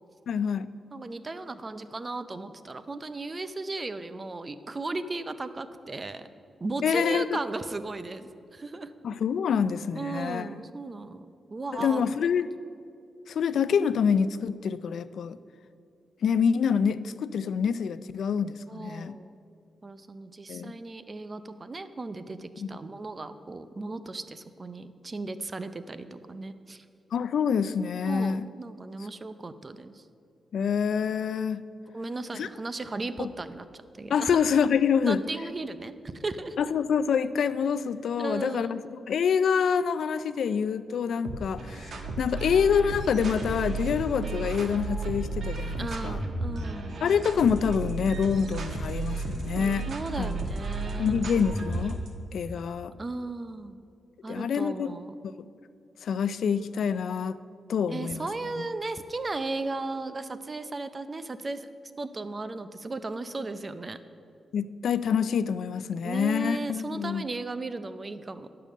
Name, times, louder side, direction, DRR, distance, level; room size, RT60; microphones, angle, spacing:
voice 1, 0.3-0.7 6.8-7.4 9.0-10.5 11.7-12.5 13.3-15.4 16.2-19.2 20.5-20.7 22.6-22.7 27.1-28.5 30.5-31.6 32.3-32.5 33.2-33.3 34.1-35.2 36.6-38.8 39.1-46.2 47.0-49.9 50.2-50.4 51.0-52.0 52.3-53.0 54.3-54.9 55.4-55.5 56.0-57.4 57.7-58.3 58.6-58.7 64.5-67.2, left 7 dB, 75° left, 15 dB, 0.3 m, -26 dB
voice 2, 0.9-6.3 6.6-8.9 10.0-12.1 18.7-19.3 19.8-26.8 28.1-30.0 31.9-33.7 34.0-34.4 35.0-36.6 38.2-38.7 45.8-47.0 49.9-51.1 53.0-53.8 54.2-55.1 57.9-61.7 62.0-64.0 66.0-68.5, right 3 dB, 30° right, 12 dB, 0.5 m, -36 dB
sound 1, 41.2-52.1, right 3 dB, 60° right, 1.1 m, -33 dB
10.5 x 6.7 x 6.3 m, 2.4 s
cardioid pair, 95°, 0 cm